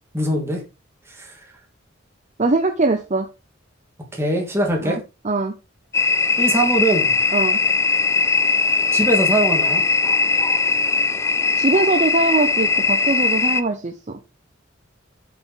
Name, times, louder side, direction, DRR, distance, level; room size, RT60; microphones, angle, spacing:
voice 1, 0.1-0.6 1.2-1.4 4.1-5.0 6.4-7.1 8.9-9.8, right 1 dB, 15° right, 2.3 m, -21 dB
voice 2, 2.4-3.3 4.8-5.0 5.2-5.5 7.3-7.6 11.6-14.2, right 2 dB, 35° right, 0.7 m, -21 dB
sound 1, 5.9-13.6, left 4 dB, 15° left, 0.4 m, -19 dB
7.7 x 6.0 x 4.2 m
head